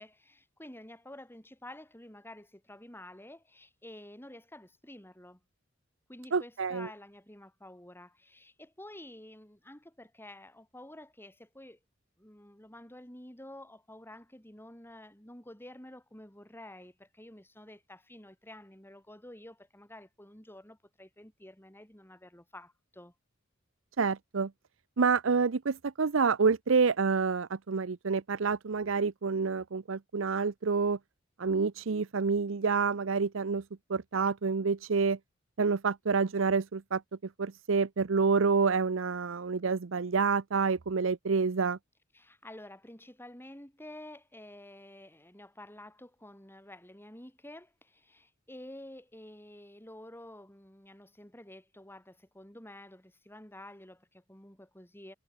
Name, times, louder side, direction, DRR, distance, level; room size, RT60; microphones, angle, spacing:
voice 1, 0.0-5.4 6.1-11.8 12.2-23.1 42.1-55.2, left 1 dB, 10° left, 7.9 m, -50 dB
voice 2, 6.3-6.9 24.0-24.5 25.0-31.0 31.4-33.6 33.9-35.2 35.6-37.0 37.4-41.8, right 5 dB, 70° right, 0.6 m, -28 dB
head